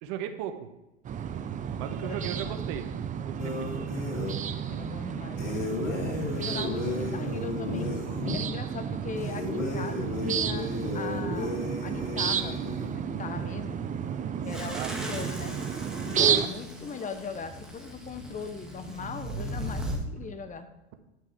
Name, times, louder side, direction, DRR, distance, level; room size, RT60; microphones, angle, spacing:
voice 1, 0.0-0.7 1.8-3.0 3.3-3.7 14.7-15.1 16.3-16.5, right 9 dB, 55° right, 8 dB, 1.2 m, -37 dB
sound 1, 1.0-16.5, right 8 dB, 20° right, 0.6 m, -32 dB
voice 2, 1.8-2.6 4.7-5.9 6.3-7.9 8.3-12.6 13.0-13.8 14.4-15.6 16.0-20.7, left 5 dB, 20° left, 10 dB, 1.0 m, -39 dB
sound 2, 3.4-4.4 5.4-8.4 9.2-12.9, left 3 dB, 80° left, 2.4 m, -34 dB
sound 3, 14.5-20.0, equal, ahead, 1.8 m, -38 dB
9.9 x 6.2 x 4.7 m, 0.98 s
hypercardioid pair, 100°, 35 cm